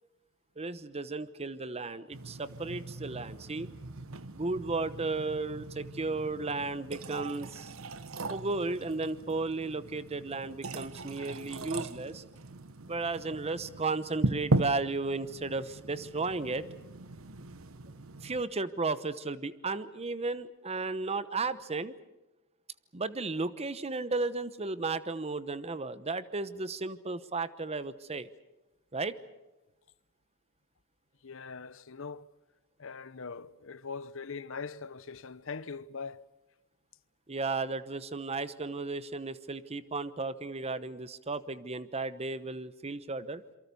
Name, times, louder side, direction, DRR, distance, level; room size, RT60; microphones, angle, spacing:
voice 1, 0.6-3.7 4.3-7.7 8.3-12.2 12.9-16.6 18.2-21.9 22.9-28.3 28.9-29.2 37.3-43.4, right 3 dB, 30° right, 1.0 m, -34 dB
sound 1, 2.1-18.4, right 2 dB, 75° right, 1.2 m, -38 dB
voice 2, 31.2-32.3 32.8-36.3, left 5 dB, 65° left, 0.9 m, -41 dB
27.5 x 23.5 x 7.0 m
head